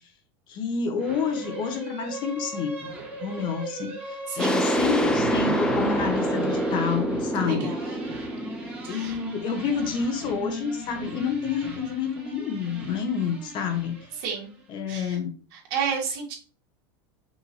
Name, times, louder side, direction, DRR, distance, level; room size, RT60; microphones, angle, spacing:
voice 1, 0.5-2.9 3.2-8.0 8.9-14.0 14.7-15.3, left 6 dB, 35° left, 7 dB, 0.7 m, -29 dB
sound 1, 1.0-14.6, right 2 dB, 10° right, 1.5 m, -38 dB
voice 2, 4.3-4.6 7.4-8.0 8.8-9.2 14.2-14.5 14.9-15.2 15.5-16.3, right 6 dB, 55° right, -1 dB, 1.8 m, -31 dB
sound 2, 4.4-9.9, right 1 dB, 5° left, 0.4 m, -26 dB
5.4 x 2.6 x 2.9 m, 0.37 s
supercardioid pair, 145°, 13 cm